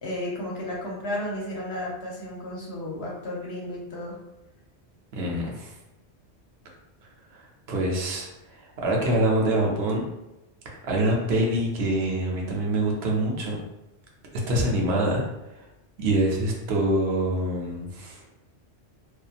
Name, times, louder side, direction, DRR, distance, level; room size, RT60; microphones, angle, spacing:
voice 1, 0.0-4.2, left 1 dB, 65° left, -3 dB, 1.0 m, -33 dB
voice 2, 5.1-5.7 7.3-7.4 7.7-10.0 10.8-13.6 14.5-15.2 16.0-18.2, right 1 dB, 70° right, -1 dB, 0.9 m, -25 dB
2.7 x 2.3 x 2.4 m, 0.96 s
omnidirectional pair, 1.2 m